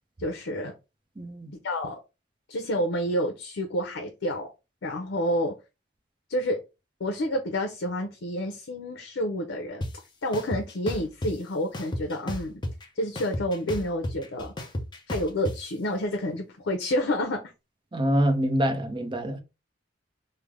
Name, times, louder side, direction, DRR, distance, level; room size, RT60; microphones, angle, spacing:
voice 1, 0.2-0.7 1.6-2.0 2.5-4.5 4.8-5.6 6.3-6.6 7.0-9.8 10.2-12.5 13.0-14.5 15.1-17.4, equal, 80° left, 0.6 m, -29 dB
voice 2, 1.2-1.5 17.9-19.4, equal, 25° right, 0.6 m, -25 dB
sound 1, 9.8-9.9 10.3-11.3 11.7-12.8 13.2-15.6, left 1 dB, 25° left, 0.6 m, -32 dB
3.3 x 2.0 x 3.5 m
head